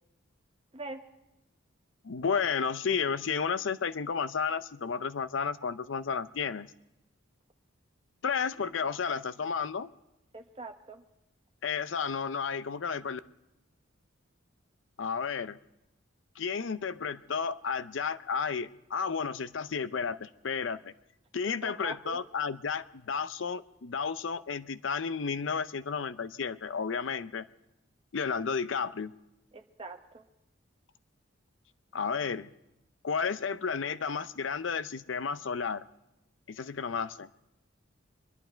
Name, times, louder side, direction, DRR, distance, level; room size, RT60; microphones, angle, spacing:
voice 1, 2.0-6.7 8.2-9.9 11.6-13.2 15.0-15.6 16.4-20.9 21.3-27.5 28.1-29.1 31.9-32.5 33.0-35.8 36.5-37.3, left 6 dB, 70° left, 13 dB, 0.6 m, -32 dB
voice 2, 10.3-11.0 21.4-22.2 29.5-30.2, right 3 dB, 30° right, 4 dB, 1.1 m, -43 dB
24.5 x 11.5 x 4.5 m, 0.90 s
head